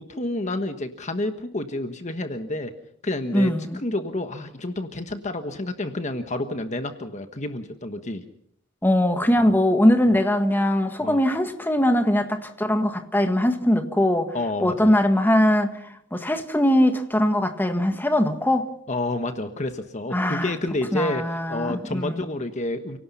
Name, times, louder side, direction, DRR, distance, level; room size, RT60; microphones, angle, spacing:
voice 1, 0.0-2.7 3.0-8.2 9.4-9.5 11.0-11.2 14.3-14.9 18.9-23.0, left 2 dB, 35° left, 1.3 m, -29 dB
voice 2, 3.3-3.8 8.8-14.4 14.6-15.8 16.1-18.7 20.1-20.5 20.9-22.2, left 1 dB, 10° left, 1.8 m, -21 dB
30.0 x 18.0 x 5.6 m
head